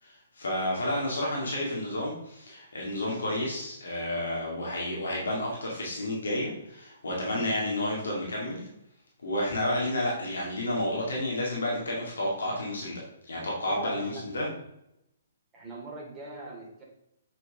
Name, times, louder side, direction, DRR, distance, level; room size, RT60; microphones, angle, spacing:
voice 1, 0.0-8.7 9.2-14.5, left 1 dB, 70° left, -3 dB, 2.3 m, -31 dB
voice 2, 0.6-1.0 7.3-7.4 13.3-14.5 15.5-16.8, right 2 dB, 20° right, -3 dB, 2.8 m, -42 dB
8.3 x 6.1 x 3.6 m, 0.81 s
figure-of-eight pair, 125°, 0 cm